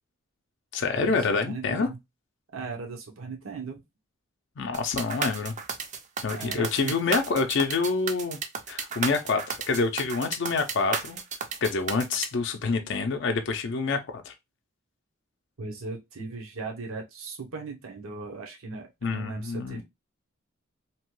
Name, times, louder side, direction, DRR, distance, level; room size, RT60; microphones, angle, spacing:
voice 1, 0.7-1.9 4.6-5.5 6.2-8.4 8.7-11.2 11.6-14.3 19.0-19.8, left 4 dB, 60° left, 0.5 m, -27 dB
voice 2, 1.4-2.0 2.5-3.8 6.3-7.0 15.6-19.8, right 4 dB, 75° right, 0.7 m, -38 dB
sound 1, 4.7-12.3, right 6 dB, 35° right, 0.4 m, -33 dB
2.8 x 2.2 x 3.0 m
head